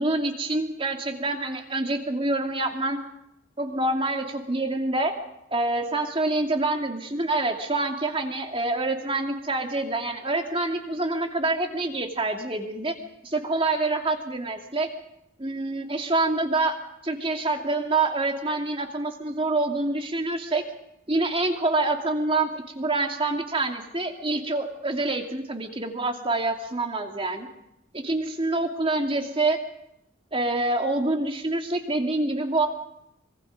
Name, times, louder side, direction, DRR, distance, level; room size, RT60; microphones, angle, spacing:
voice 1, 0.0-3.0 3.6-5.1 5.5-13.0 13.2-14.9 15.4-16.7 17.0-20.6 21.1-27.5 27.9-29.6 30.3-32.7, right 2 dB, 25° right, 4 dB, 2.5 m, -26 dB
25.5 x 23.5 x 5.2 m, 0.84 s
head